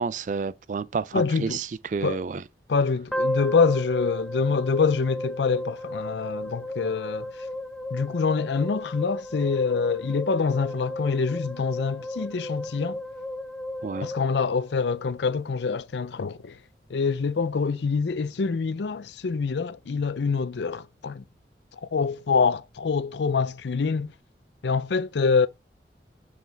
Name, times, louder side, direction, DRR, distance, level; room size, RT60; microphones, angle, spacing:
voice 1, 0.0-2.4 13.8-14.1, right 5 dB, 45° right, 0.3 m, -30 dB
voice 2, 1.1-1.6 2.0-2.2 2.7-7.3 7.9-13.0 14.0-16.6 16.9-21.2 21.8-24.1 24.6-25.5, left 5 dB, 75° left, 0.5 m, -25 dB
sound 1, 3.1-15.3, left 1 dB, 5° left, 0.6 m, -34 dB
7.8 x 4.8 x 3.3 m
head